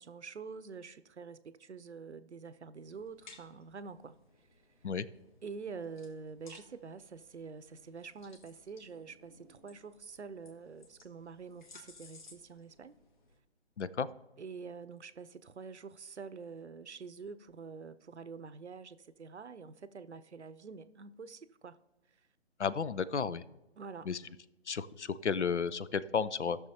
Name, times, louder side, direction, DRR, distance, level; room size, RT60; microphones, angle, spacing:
voice 1, 0.0-4.2 5.4-13.0 14.4-21.8 23.8-24.3, right 5 dB, 75° right, 0.7 m, -47 dB
sound 1, 2.8-13.4, left 3 dB, 45° left, 1.5 m, -60 dB
voice 2, 13.8-14.1 22.6-23.4 24.1-24.2 24.7-26.6, left 6 dB, 80° left, 0.6 m, -33 dB
16.5 x 6.3 x 2.8 m
figure-of-eight pair, 140°, 34 cm